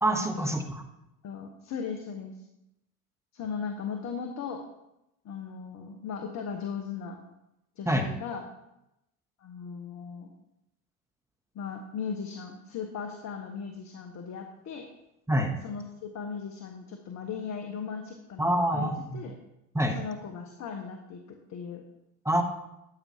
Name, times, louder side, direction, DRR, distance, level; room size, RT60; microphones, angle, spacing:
voice 1, 0.0-0.8 7.9-8.1 15.3-15.5 18.4-19.2 19.7-20.0 22.2-22.4, right 1 dB, 5° right, 4 dB, 1.0 m, -26 dB
voice 2, 1.2-2.4 3.3-4.6 5.2-7.2 7.8-8.4 9.4-10.3 11.5-14.9 15.6-19.3 19.9-21.2 21.5-21.8, left 6 dB, 35° left, 4 dB, 1.3 m, -37 dB
13.5 x 8.7 x 2.9 m, 0.88 s
hypercardioid pair, 75°, 46 cm